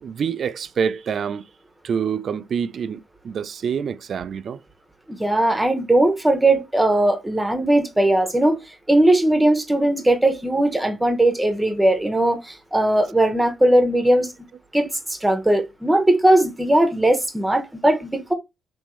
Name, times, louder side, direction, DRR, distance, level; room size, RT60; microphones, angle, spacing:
voice 1, 0.0-1.5 1.8-4.6, right 7 dB, 55° right, 0.3 m, -26 dB
voice 2, 5.2-8.6 8.9-14.3 14.7-18.3, right 1 dB, 10° right, 0.9 m, -19 dB
3.6 x 2.9 x 3.0 m
supercardioid pair, 70°, 0 cm